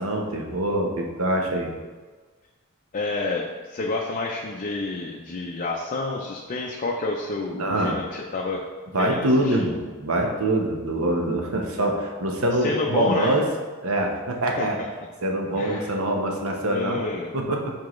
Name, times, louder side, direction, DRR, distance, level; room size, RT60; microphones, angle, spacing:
voice 1, 0.0-1.7 7.5-7.9 8.9-13.4 13.8-14.8 15.2-17.0 17.3-17.7, right 1 dB, 70° right, 1 dB, 0.9 m, -24 dB
voice 2, 2.9-8.7 9.0-9.7 12.6-13.4 14.6-14.9 15.6-15.9 16.7-17.3, left 3 dB, 40° left, -1 dB, 0.5 m, -29 dB
7.3 x 4.6 x 3.1 m, 1.4 s
head